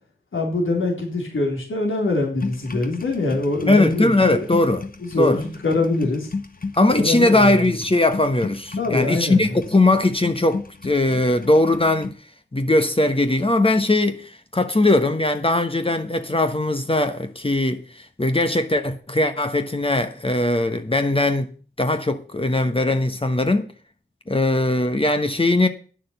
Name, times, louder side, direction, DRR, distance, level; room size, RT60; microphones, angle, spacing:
voice 1, 0.3-4.4 5.0-6.3 7.0-7.6 8.8-9.6, left 2 dB, 80° left, 3.7 m, -24 dB
sound 1, 2.4-12.1, left 4 dB, 45° left, 1.5 m, -34 dB
voice 2, 3.7-4.8 5.2-5.4 6.7-12.1 12.5-21.5 21.8-23.7 24.3-25.7, left 2 dB, 25° left, 1.1 m, -20 dB
10.0 x 6.3 x 8.0 m
wide cardioid pair, 55°, 20 cm